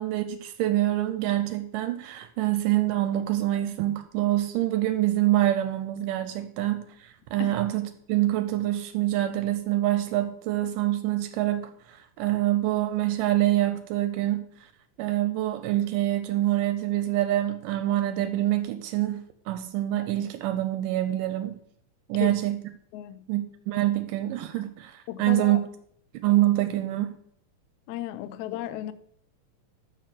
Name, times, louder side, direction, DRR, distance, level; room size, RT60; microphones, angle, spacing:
voice 1, 0.0-14.4 15.0-21.5 22.1-22.6 23.3-25.6 26.2-27.1, right 14 dB, 85° right, 2.2 m, -26 dB
voice 2, 22.9-23.2 25.1-25.6 27.9-28.9, left 13 dB, 80° left, 1.8 m, -34 dB
6.3 x 6.0 x 6.6 m
omnidirectional pair, 3.8 m